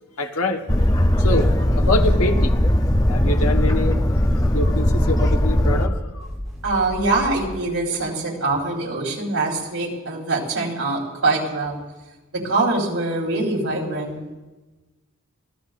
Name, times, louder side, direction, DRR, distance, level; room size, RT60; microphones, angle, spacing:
voice 1, 0.2-0.6 1.2-2.6 3.1-6.3, left 2 dB, 85° left, 1.3 m, -25 dB
Boat Water vehicle, 0.7-5.9, left 1 dB, 15° left, 0.7 m, -18 dB
sound 1, 6.2-7.5, left 1 dB, ahead, 6.3 m, -35 dB
voice 2, 6.6-11.8 12.3-14.2, right 2 dB, 85° right, 4.3 m, -23 dB
25.5 x 16.5 x 2.6 m
head